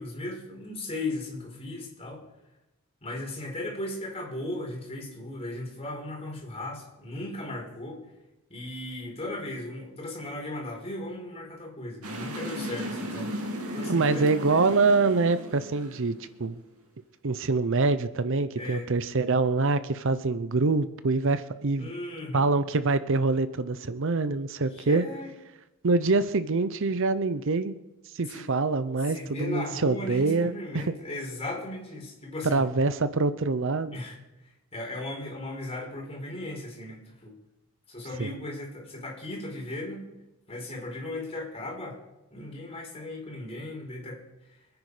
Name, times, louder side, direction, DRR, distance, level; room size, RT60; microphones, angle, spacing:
voice 1, 0.0-2.2 3.0-8.0 8.5-13.3 13.7-14.3 18.6-18.9 21.8-22.4 24.7-25.3 28.3-28.5 29.1-32.6 33.9-34.2 34.4-37.3 37.9-40.0 40.5-42.0 42.3-44.2, left 1 dB, 30° left, -1 dB, 4.8 m, -36 dB
sound 1, 12.0-16.4, equal, 85° right, 3.0 m, -35 dB
voice 2, 13.9-16.6 17.2-21.9 22.3-25.0 25.8-27.8 28.1-30.9 32.4-34.0 38.2-38.3, right 3 dB, 60° right, 13 dB, 0.7 m, -25 dB
25.5 x 9.7 x 4.9 m, 0.99 s
head